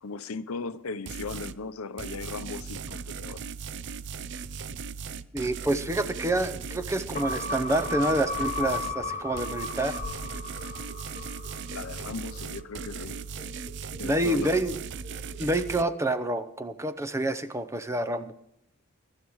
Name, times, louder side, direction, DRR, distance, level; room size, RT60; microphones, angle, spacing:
voice 1, 0.0-3.4 11.7-13.2 14.0-14.6, left 4 dB, 85° left, 0.7 m, -37 dB
sound 1, 1.1-1.6 2.0-9.0 9.4-15.8, right 5 dB, 55° right, 0.5 m, -38 dB
voice 2, 5.3-10.0 14.0-14.7 15.4-18.3, right 1 dB, 15° right, 0.7 m, -28 dB
sound 2, 6.1-15.9, left 5 dB, 70° right, 6.0 m, -50 dB
sound 3, 7.1-11.8 12.2-12.3, left 3 dB, 35° left, 0.8 m, -34 dB
22.5 x 12.5 x 3.1 m
head